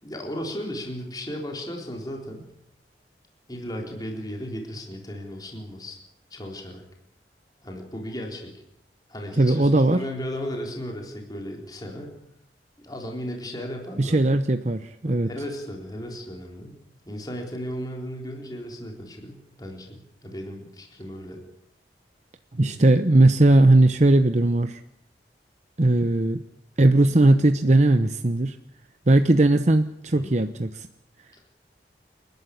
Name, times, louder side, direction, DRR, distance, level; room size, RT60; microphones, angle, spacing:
voice 1, 0.0-2.5 3.5-6.0 6.3-6.8 7.6-8.5 9.1-12.2 12.8-14.2 15.0-16.8 17.1-21.4 22.6-22.8 30.1-30.3, equal, 20° left, 1 dB, 3.9 m, -35 dB
voice 2, 9.4-10.0 14.0-15.3 22.6-24.8 25.8-26.4 26.8-28.6 29.1-30.9, right 2 dB, 40° right, 8 dB, 0.9 m, -18 dB
28.5 x 12.0 x 8.5 m, 0.80 s
head